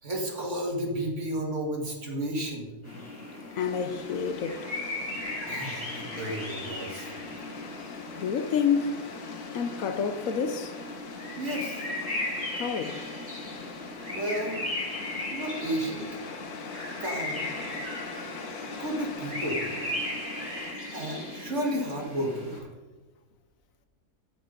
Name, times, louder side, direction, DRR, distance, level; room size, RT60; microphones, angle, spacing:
voice 1, 0.0-2.7 5.4-7.1 11.4-11.8 14.1-14.6 15.3-16.1 17.0-17.5 18.7-19.6 20.9-22.7, right 1 dB, 50° right, 2.4 m, -32 dB
sound 1, 2.8-22.6, left 1 dB, 10° right, 4.1 m, -37 dB
sound 2, 3.6-20.7, left 4 dB, 90° left, 1.6 m, -43 dB
voice 2, 3.6-4.6 8.1-9.0 9.5-10.7 12.6-12.9, left 6 dB, 70° left, 1.1 m, -28 dB
15.0 x 5.6 x 5.1 m
omnidirectional pair, 1.6 m